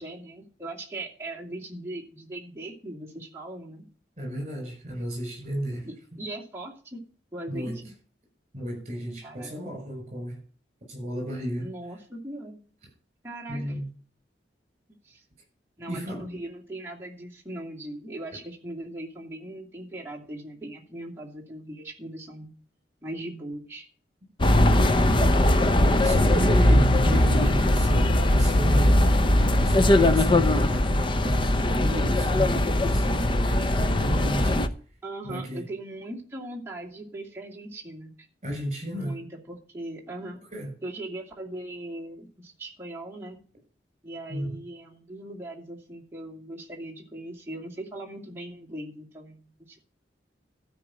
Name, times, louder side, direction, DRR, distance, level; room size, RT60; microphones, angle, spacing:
voice 1, 0.0-3.8 5.8-7.0 7.3-7.9 9.2-9.5 11.6-12.6 13.2-13.6 15.1-15.2 15.8-22.5 23.0-23.9 35.0-38.1 39.0-40.4 40.8-43.4 44.0-49.8, right 1 dB, 15° right, 2.5 m, -39 dB
voice 2, 4.2-6.2 7.5-7.8 8.5-10.4 10.9-11.7 13.5-13.9 15.9-16.3 24.6-29.1 29.6-34.7 35.2-35.7 38.4-39.2 40.5-40.7 44.3-44.6, equal, 40° right, 6.6 m, -33 dB
sound 1, 24.4-34.7, left 1 dB, 30° left, 0.7 m, -20 dB
13.0 x 5.2 x 8.6 m
head